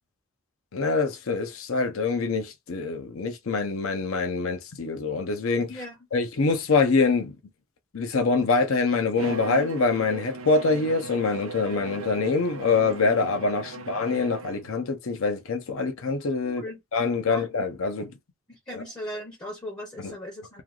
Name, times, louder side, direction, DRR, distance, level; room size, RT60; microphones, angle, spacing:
voice 1, 0.7-5.8 6.1-7.4 7.9-16.6 16.9-18.1 18.7-18.8 20.0-20.1, left 4 dB, 75° left, 0.6 m, -25 dB
Bowed string instrument, 9.2-14.8, right 4 dB, 75° right, 0.5 m, -38 dB
voice 2, 16.4-16.8 17.3-17.5 18.5-20.6, equal, 20° left, 0.6 m, -38 dB
3.2 x 2.3 x 2.4 m
head